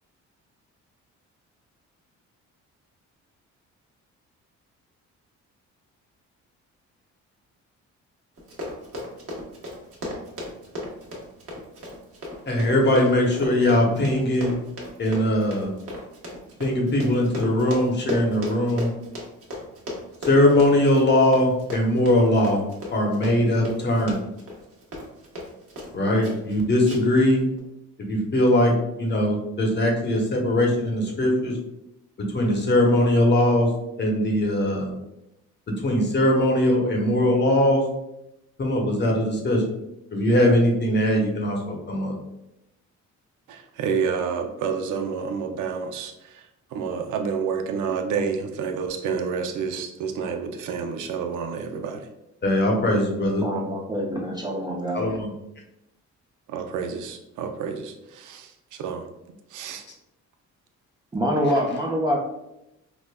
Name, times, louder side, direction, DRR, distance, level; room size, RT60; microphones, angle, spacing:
Run, 8.4-25.9 26.2-26.5 26.9-27.2 27.6-27.7, left 1 dB, 50° right, 1.1 m, -36 dB
voice 1, 12.5-14.6 15.0-15.7 16.6-18.9 20.2-22.6 22.9-24.2 25.9-27.5 28.1-31.5 32.2-33.7 34.0-34.9 35.8-37.8 38.6-39.6 40.1-42.2 52.4-53.4 54.9-55.3 61.4-61.5, left 1 dB, 35° left, 0 dB, 0.9 m, -21 dB
voice 2, 43.5-46.4 46.7-52.1 56.5-59.1 59.5-59.8, right 6 dB, 80° right, 5 dB, 0.5 m, -29 dB
voice 3, 53.4-55.0 61.1-62.2, equal, 15° right, -2 dB, 0.5 m, -25 dB
4.9 x 2.1 x 2.2 m, 0.88 s
cardioid pair, 90°, 30 cm